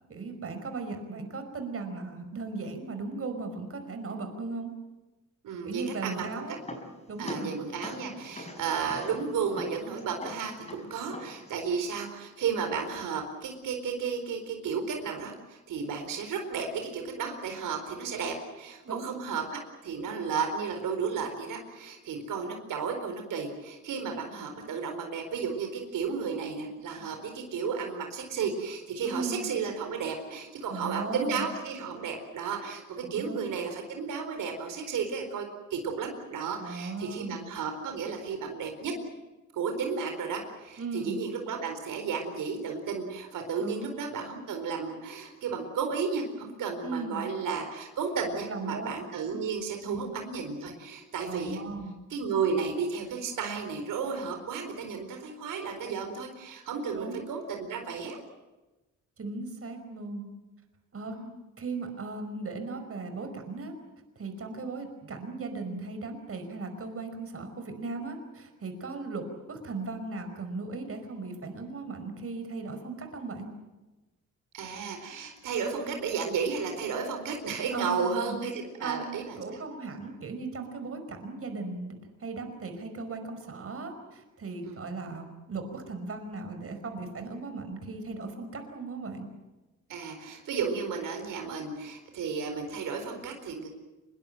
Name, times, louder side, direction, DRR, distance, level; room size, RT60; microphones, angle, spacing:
voice 1, 0.1-4.7 5.6-6.6 7.1-7.6 18.8-19.1 29.0-29.5 30.7-31.5 33.0-33.5 36.6-37.4 40.8-41.2 43.6-44.0 46.8-47.3 48.4-48.9 49.3-49.4 49.8-50.0 51.3-52.0 56.9-57.3 59.2-60.3 60.9-61.2 61.6-63.7 64.2-73.5 77.7-78.4 78.8-89.3, right 3 dB, 45° right, 6 dB, 5.3 m, -37 dB
voice 2, 5.4-6.4 7.2-38.9 39.5-51.6 52.1-58.2 61.0-61.3 74.5-79.4 84.6-84.8 89.9-93.7, right 5 dB, 85° right, 5 dB, 4.4 m, -33 dB
sound 1, 5.9-11.7, left 2 dB, 20° left, 5.9 m, -44 dB
25.5 x 22.0 x 7.7 m, 1.1 s
cardioid pair, 105°, 31 cm